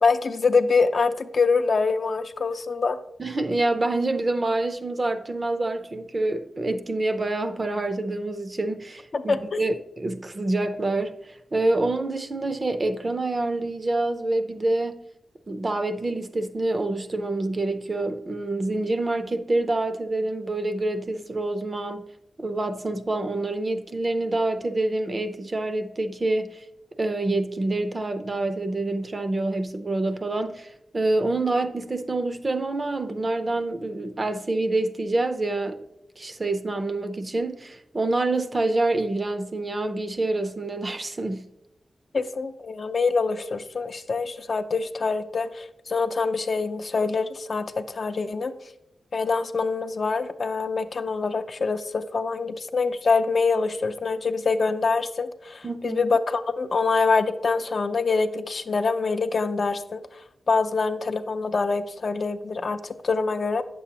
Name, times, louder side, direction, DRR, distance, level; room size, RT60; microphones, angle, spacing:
voice 1, 0.0-3.0 9.1-9.7 42.1-48.5 49.1-60.0 60.5-63.6, left 4 dB, 50° left, 0.4 m, -25 dB
voice 2, 3.2-15.0 15.5-22.1 22.4-26.6 27.0-35.8 36.2-41.5 55.6-56.0, right 2 dB, 30° right, 0.5 m, -27 dB
9.0 x 6.9 x 2.8 m
wide cardioid pair, 120°, 0 cm